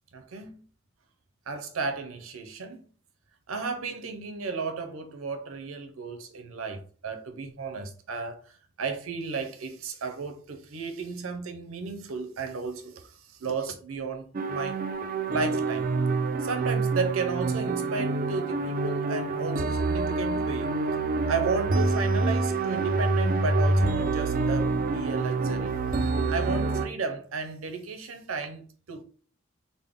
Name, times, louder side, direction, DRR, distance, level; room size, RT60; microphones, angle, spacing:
voice 1, 0.1-0.6 1.5-2.9 3.5-14.8 15.3-15.9 16.4-20.7 21.3-25.8 26.3-29.0, right 4 dB, 80° right, 0.6 m, -34 dB
sound 1, 14.3-26.9, right 3 dB, 40° right, 0.3 m, -27 dB
3.6 x 2.1 x 3.5 m
head